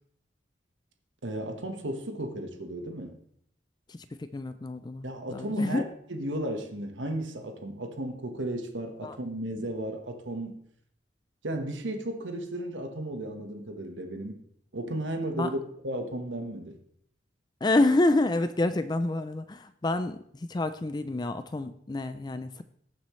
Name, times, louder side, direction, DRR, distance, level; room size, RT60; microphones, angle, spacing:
voice 1, 1.2-3.2 5.0-10.6 11.4-14.4 14.7-16.8, right 1 dB, 85° right, 5 dB, 1.3 m, -34 dB
voice 2, 3.9-5.0 5.3-5.8 9.0-9.2 15.4-15.5 17.6-22.6, left 2 dB, 20° left, 11 dB, 0.4 m, -28 dB
18.5 x 7.2 x 3.2 m, 0.69 s
head